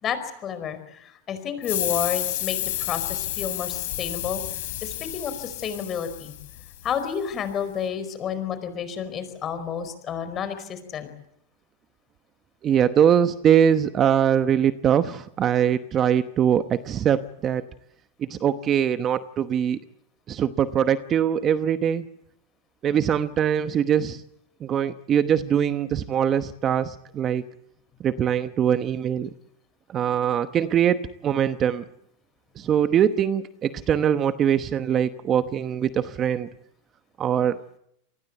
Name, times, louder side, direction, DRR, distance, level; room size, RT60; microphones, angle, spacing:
voice 1, 0.0-6.3 6.8-11.1, left 7 dB, 30° left, 11 dB, 4.7 m, -31 dB
sound 1, 1.6-6.9, left 15 dB, 70° left, 4.9 m, -30 dB
voice 2, 12.6-17.6 18.2-19.8 20.3-22.1 22.8-24.2 24.6-27.4 28.0-29.3 29.9-31.8 32.6-36.5 37.2-37.6, right 9 dB, 30° right, 11 dB, 0.9 m, -22 dB
27.5 x 20.0 x 8.1 m, 0.76 s
supercardioid pair, 135°, 0 cm